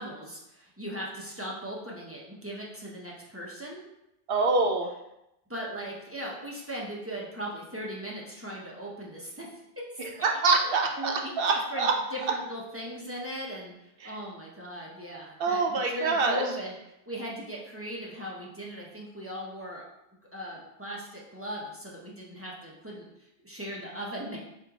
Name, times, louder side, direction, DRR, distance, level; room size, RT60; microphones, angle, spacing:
voice 1, 0.0-3.8 5.5-9.5 9.9-10.3 11.0-11.3 11.7-16.7 17.1-19.8 20.3-24.5, equal, 15° right, -5 dB, 0.6 m, -38 dB
voice 2, 4.3-4.9 10.0-11.1 11.4-11.9 14.0-14.1 15.4-16.4, right 3 dB, 65° right, 2 dB, 0.7 m, -25 dB
3.8 x 3.6 x 2.9 m, 0.86 s
omnidirectional pair, 1.2 m